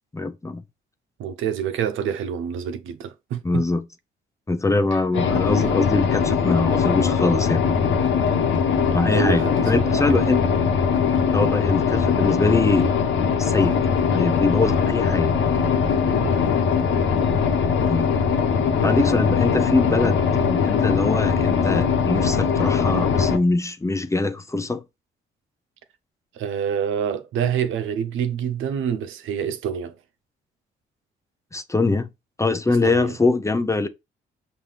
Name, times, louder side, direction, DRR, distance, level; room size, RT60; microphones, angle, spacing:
voice 1, 0.1-0.6 3.4-3.8 4.5-7.6 8.9-10.4 11.3-12.9 13.4-13.8 14.1-15.3 17.9-18.1 18.8-24.8 31.5-32.1 32.4-33.9, left 3 dB, 15° left, 0.6 m, -23 dB
voice 2, 1.2-3.6 9.1-10.3 16.2-16.5 26.4-30.0 32.7-33.1, right 8 dB, 80° right, 0.7 m, -27 dB
sound 1, 5.1-23.4, left 6 dB, 70° left, 1.1 m, -21 dB
5.6 x 2.7 x 3.3 m
cardioid pair, 90°, 20 cm